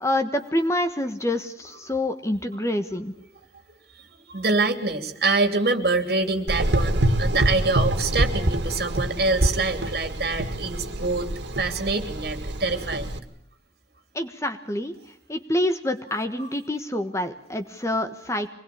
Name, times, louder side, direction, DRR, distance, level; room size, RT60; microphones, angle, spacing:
voice 1, 0.0-3.1 14.1-14.9 15.3-18.5, left 1 dB, 15° left, 7 dB, 1.3 m, -27 dB
voice 2, 3.9-11.3 11.6-13.1, right 3 dB, 55° right, 7 dB, 3.1 m, -25 dB
Gurgling / Engine, 6.5-13.2, right 1 dB, 80° right, 2.2 m, -26 dB
25.5 x 20.5 x 8.6 m, 0.69 s
head